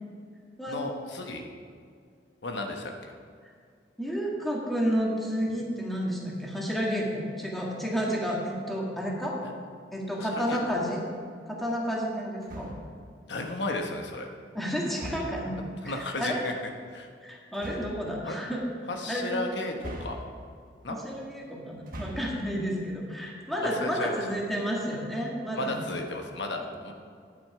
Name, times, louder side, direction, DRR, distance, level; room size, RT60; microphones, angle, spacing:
voice 1, 0.7-1.4 2.4-2.9 9.4-9.5 10.2-10.7 13.3-14.3 15.8-16.5 16.9-17.1 18.2-18.4 18.9-20.2 20.8-21.0 23.6-24.2 25.5-26.9, left 2 dB, 75° left, 3 dB, 1.1 m, -34 dB
voice 2, 4.0-9.4 9.9-11.0 11.5-12.7 14.5-15.5 15.8-16.4 17.2-18.6 19.1-19.4 20.9-25.8, equal, ahead, -3 dB, 1.8 m, -31 dB
sound 1, 12.4-13.0 15.0-15.6 17.5-18.1 19.8-20.6 21.8-22.5, equal, 55° right, 1.3 m, -41 dB
10.5 x 8.7 x 4.8 m, 2.2 s
head